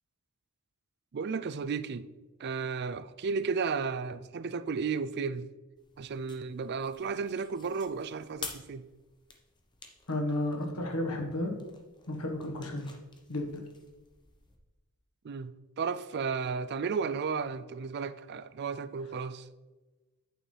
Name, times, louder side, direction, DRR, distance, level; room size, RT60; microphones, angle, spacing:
voice 1, 1.1-2.1 2.4-5.5 6.0-8.9 15.2-15.5 15.8-19.5, right 5 dB, 50° right, 0.4 m, -33 dB
sound 1, 5.7-14.6, left 4 dB, 20° left, 0.9 m, -50 dB
voice 2, 10.1-11.5 12.1-12.9 13.3-13.6, left 1 dB, 85° left, 1.5 m, -32 dB
8.9 x 6.8 x 3.3 m
head